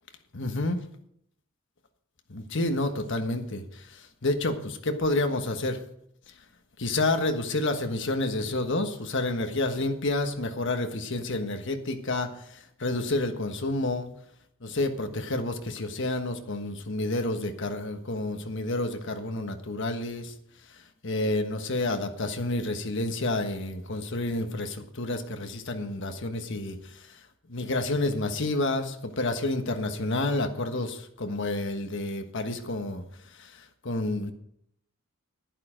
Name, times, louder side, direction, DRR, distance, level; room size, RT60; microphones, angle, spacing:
voice 1, 0.3-0.8 2.3-5.8 6.8-14.1 14.6-20.3 21.0-27.1 27.5-33.0 33.4-33.5 33.8-34.3, left 2 dB, 60° left, 6 dB, 1.4 m, -29 dB
11.0 x 11.0 x 5.1 m, 0.72 s
head